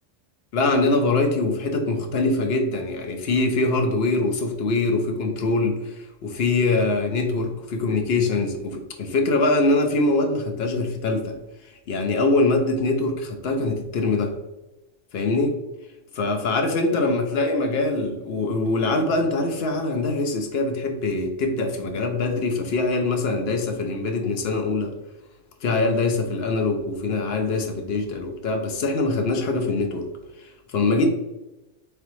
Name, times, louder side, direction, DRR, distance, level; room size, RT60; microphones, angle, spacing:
voice 1, 0.5-11.4 11.9-14.3 15.1-15.6 16.1-24.9 25.6-30.1 30.4-31.1, left 3 dB, 60° left, 4 dB, 0.8 m, -23 dB
3.7 x 3.3 x 3.0 m, 0.99 s
omnidirectional pair, 1.2 m